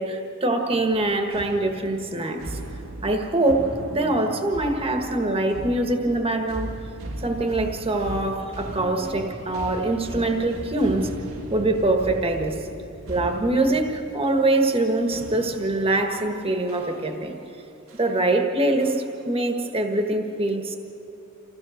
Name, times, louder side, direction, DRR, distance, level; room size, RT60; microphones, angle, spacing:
voice 1, 0.0-2.6 3.0-6.7 7.2-11.1 11.5-12.6 13.1-17.3 18.0-20.8, right 2 dB, 30° right, 4 dB, 1.5 m, -24 dB
sound 1, 0.9-17.5 17.9-18.2 18.8-19.3, right 1 dB, 85° right, 1.7 m, -38 dB
27.0 x 16.0 x 6.5 m, 2.7 s
head